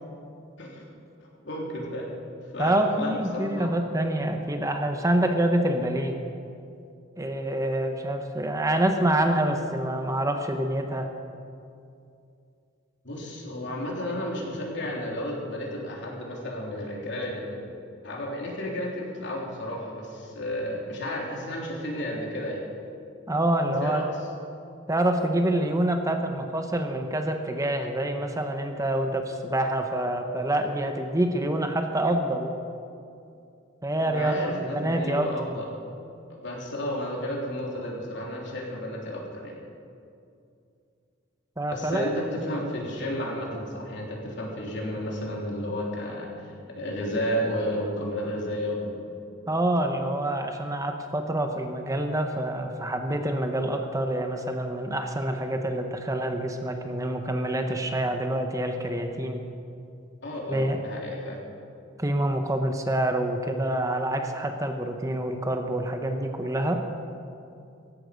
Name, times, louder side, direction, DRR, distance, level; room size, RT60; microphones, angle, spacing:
voice 1, 1.4-2.1 2.5-3.7 13.0-17.6 18.0-22.7 23.8-24.1 34.0-35.7 36.4-39.6 41.7-46.5 46.8-49.0 60.2-61.4, equal, 65° left, -2 dB, 3.6 m, -32 dB
voice 2, 2.6-6.1 7.2-11.1 23.3-24.0 24.9-32.5 33.8-35.3 41.6-42.1 49.5-59.4 60.5-60.8 62.0-66.8, right 1 dB, 15° right, 5 dB, 1.0 m, -26 dB
18.0 x 15.0 x 5.3 m, 2.5 s
head